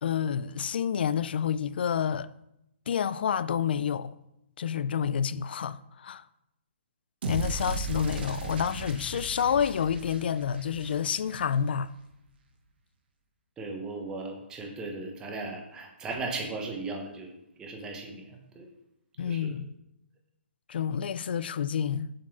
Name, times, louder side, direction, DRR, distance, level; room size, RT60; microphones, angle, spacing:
voice 1, 0.0-2.3 2.9-4.1 4.6-6.2 7.3-11.9 19.2-19.8 20.7-22.1, left 8 dB, 55° left, 0.4 m, -29 dB
sound 1, 7.2-11.5, right 3 dB, 50° right, 1.4 m, -36 dB
voice 2, 13.6-17.3 17.6-18.7 19.2-19.6, right 3 dB, 10° right, 1.1 m, -37 dB
7.4 x 4.5 x 6.0 m
hypercardioid pair, 165°, 7 cm